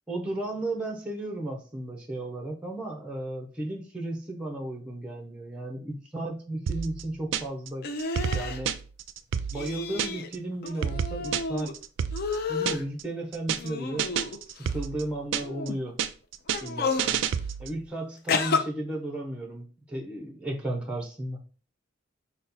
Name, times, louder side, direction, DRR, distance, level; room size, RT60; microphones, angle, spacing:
voice 1, 0.1-7.9 8.3-8.7 9.5-11.7 12.5-16.0 16.6-17.2 17.6-21.4, right 1 dB, 5° right, 1 dB, 0.7 m, -34 dB
sound 1, 6.7-7.7 8.0-10.4 10.7-13.0 13.3-13.7 14.0-15.7 16.0-17.8, right 8 dB, 75° right, 0.3 m, -30 dB
sound 2, 7.8-8.6 9.5-10.3 10.6-11.7 12.1-12.9 13.6-14.7 15.4-15.8 16.5-17.1 18.3-18.6, left 4 dB, 55° left, 0.5 m, -31 dB
4.1 x 2.2 x 4.0 m, 0.38 s
head